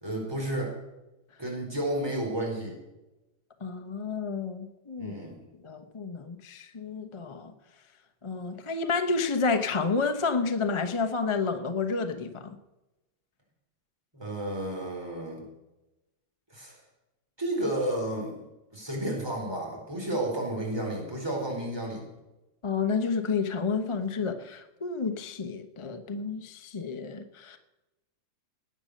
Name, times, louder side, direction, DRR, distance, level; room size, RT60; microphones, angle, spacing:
voice 1, 0.0-0.7 1.4-2.8 5.0-5.4 14.1-15.4 16.5-16.8 17.4-18.4 18.7-22.0, right 1 dB, 10° right, -1 dB, 4.3 m, -32 dB
voice 2, 3.6-5.2 5.6-7.5 8.2-12.6 22.6-27.6, left 4 dB, 25° left, 7 dB, 0.6 m, -30 dB
19.0 x 9.0 x 6.6 m, 1.0 s
omnidirectional pair, 2.1 m